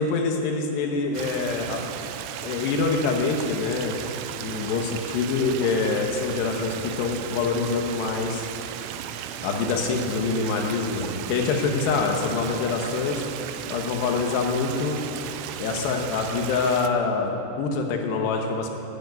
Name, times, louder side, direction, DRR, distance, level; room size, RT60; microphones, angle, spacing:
voice 1, 0.0-1.9 2.4-4.0 4.4-8.5 9.4-13.2 13.7-15.0 15.6-18.7, left 4 dB, 70° left, 3 dB, 3.1 m, -25 dB
Stream, 1.1-16.9, right 10 dB, 85° right, 3.1 m, -35 dB
11.5 x 10.5 x 9.2 m, 2.9 s
omnidirectional pair, 5.4 m